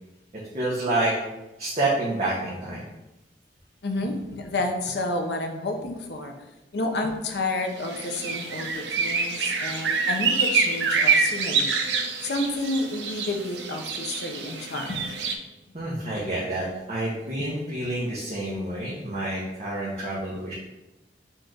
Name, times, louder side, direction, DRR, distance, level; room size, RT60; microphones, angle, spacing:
voice 1, 0.5-1.1 1.6-2.8 15.7-20.5, right 2 dB, 40° right, -7 dB, 0.8 m, -28 dB
voice 2, 3.8-11.7 12.2-15.1 17.4-17.5, left 2 dB, 75° left, 3 dB, 0.6 m, -30 dB
sound 1, 7.8-15.3, right 5 dB, 85° right, 0.5 m, -26 dB
4.4 x 2.5 x 4.5 m, 0.99 s
head